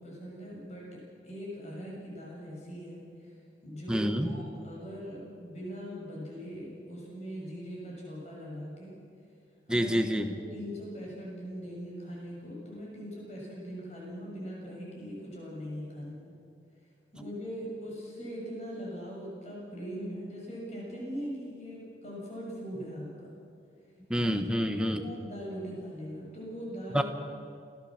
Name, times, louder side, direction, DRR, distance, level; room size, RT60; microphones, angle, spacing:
voice 1, 0.0-3.0 3.6-8.9 9.7-16.3 17.1-23.3 24.2-24.3 24.6-27.0, equal, 35° left, -3 dB, 7.0 m, -41 dB
voice 2, 3.9-4.4 9.7-10.4 24.1-25.0 26.9-27.0, equal, 5° right, 6 dB, 1.1 m, -27 dB
29.0 x 14.5 x 7.5 m, 2.4 s
head